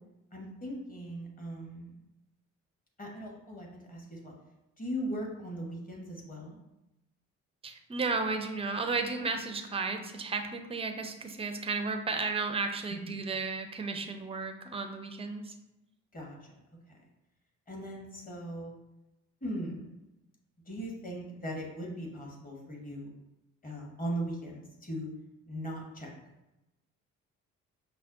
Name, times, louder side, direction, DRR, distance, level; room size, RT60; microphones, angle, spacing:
voice 1, 0.3-1.9 3.0-4.3 4.8-6.6 12.9-13.3 16.1-16.4 17.7-18.7 19.4-19.8 20.7-23.1 23.6-25.1 25.5-26.1, right 1 dB, 20° left, -1 dB, 1.2 m, -39 dB
voice 2, 7.6-15.5, right 4 dB, 15° right, 5 dB, 0.5 m, -33 dB
5.5 x 2.1 x 2.6 m, 0.94 s
hypercardioid pair, 45°, 37 cm